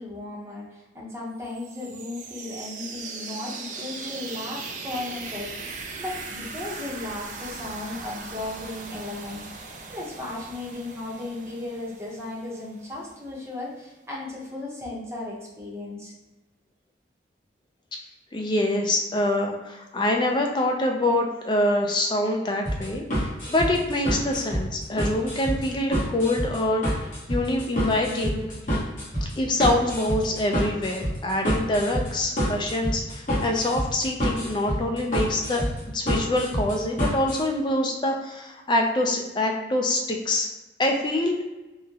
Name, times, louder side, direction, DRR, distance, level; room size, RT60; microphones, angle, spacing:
voice 1, 0.0-9.5 9.9-16.1, left 2 dB, 15° right, -5 dB, 0.7 m, -36 dB
sound 1, 1.4-13.1, right 4 dB, 45° right, 0.3 m, -39 dB
voice 2, 18.3-28.5 29.4-35.6 35.9-40.5 40.8-41.4, left 1 dB, 25° left, 2 dB, 0.4 m, -25 dB
sound 2, 22.6-37.4, equal, 45° left, 1.2 m, -28 dB
3.7 x 2.1 x 2.7 m, 1.1 s
head